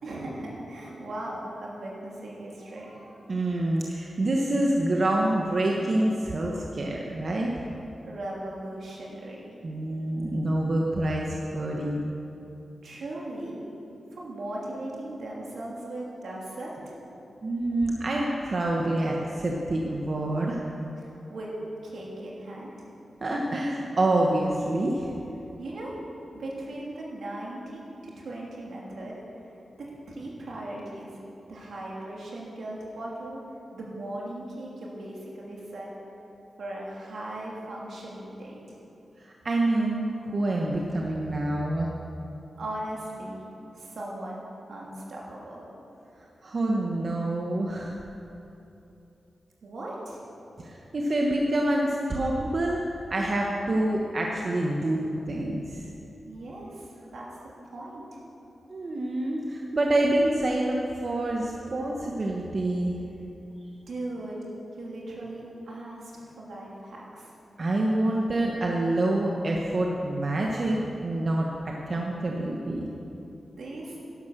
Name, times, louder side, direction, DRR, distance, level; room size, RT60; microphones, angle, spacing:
voice 1, 0.0-2.9 8.0-9.5 12.8-13.6 14.1-16.9 21.0-21.5 21.8-22.9 25.6-25.9 26.3-29.5 30.1-31.1 31.5-33.4 33.7-35.9 36.6-38.8 42.6-43.4 43.7-44.4 44.7-45.6 49.6-50.2 56.2-57.3 57.7-58.2 63.9-64.4 64.8-67.3 73.6-74.0, right 1 dB, 80° right, -4 dB, 3.1 m, -38 dB
voice 2, 3.3-7.5 9.6-12.0 17.4-20.6 23.2-25.1 39.2-41.9 46.4-48.0 50.6-52.8 53.1-55.9 58.7-63.0 67.6-72.9, right 1 dB, 45° right, -1 dB, 1.2 m, -27 dB
12.0 x 11.0 x 6.7 m, 3.0 s
wide cardioid pair, 100°, 0 cm